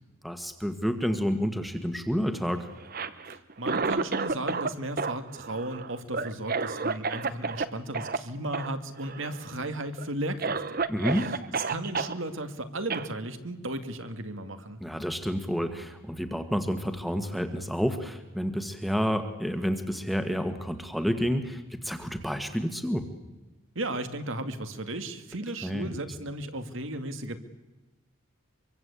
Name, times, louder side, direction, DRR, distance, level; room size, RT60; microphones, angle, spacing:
voice 1, 0.2-2.7 10.9-11.3 14.8-23.1 25.6-25.9, equal, ahead, 8 dB, 1.7 m, -29 dB
Cough, 2.8-4.7 5.0-7.7 7.9-8.2 8.5-8.7 9.0-9.5 10.0-10.1 10.4-12.1 12.9-13.1, right 4 dB, 45° right, 1.1 m, -30 dB
voice 2, 3.3-10.9 11.1-14.8 23.8-27.4, right 1 dB, 65° right, 9 dB, 2.3 m, -35 dB
25.0 x 24.0 x 8.4 m, 1.1 s
head